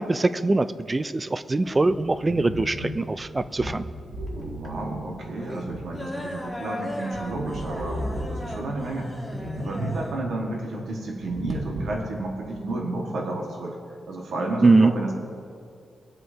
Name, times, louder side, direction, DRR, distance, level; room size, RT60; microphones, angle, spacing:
voice 1, 0.0-3.8 14.6-14.9, right 3 dB, 20° right, 13 dB, 0.3 m, -22 dB
sound 1, 1.6-6.6 6.9-8.8 9.2-10.1 10.4-10.5 11.2-12.1, equal, 35° right, 2.2 m, -35 dB
sound 2, 2.1-12.2, left 1 dB, 5° left, 1.3 m, -39 dB
voice 2, 4.3-9.1 9.6-13.8 14.1-15.1, right 2 dB, 65° right, -1 dB, 1.8 m, -31 dB
23.0 x 7.9 x 2.9 m, 2.4 s
wide cardioid pair, 165°, 0 cm